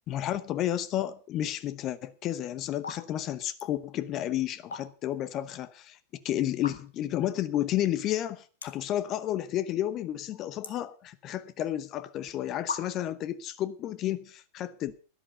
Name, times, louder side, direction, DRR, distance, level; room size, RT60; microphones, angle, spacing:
voice 1, 0.1-6.0 6.2-14.9, left 12 dB, 35° left, 0.8 m, -31 dB
sound 1, 2.0-2.3 2.7-3.0 3.3-3.7 4.5-5.2 5.6-5.7 6.5-7.1 7.6-7.7 7.9-8.0 8.5-8.9 9.3-9.8 10.1-11.5 12.2-12.3 12.7-13.2, left 5 dB, 75° left, 1.3 m, -39 dB
12.5 x 11.0 x 5.4 m
figure-of-eight pair, 90°, 0 cm